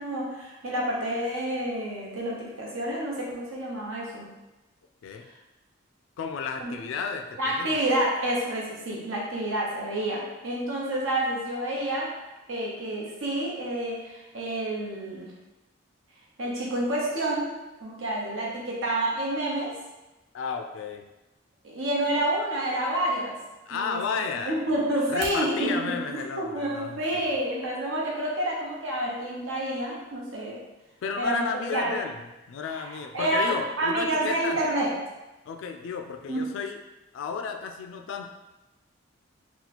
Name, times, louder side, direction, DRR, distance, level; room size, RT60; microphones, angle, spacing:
voice 1, 0.0-4.3 6.6-6.7 7.4-12.1 12.5-15.3 16.4-17.5 17.8-19.7 21.6-23.4 23.7-24.0 24.4-25.8 26.4-30.6 31.2-32.0 32.7-34.9 36.3-36.4, right 1 dB, 80° right, -3 dB, 0.9 m, -28 dB
voice 2, 6.2-7.8 20.3-21.1 23.7-24.7 25.1-27.3 31.0-34.6 35.5-36.8 37.1-38.3, left 5 dB, 70° left, 5 dB, 0.3 m, -33 dB
sound 1, 25.0-25.5, right 2 dB, 35° right, 0.6 m, -40 dB
2.8 x 2.3 x 4.1 m, 1.0 s
head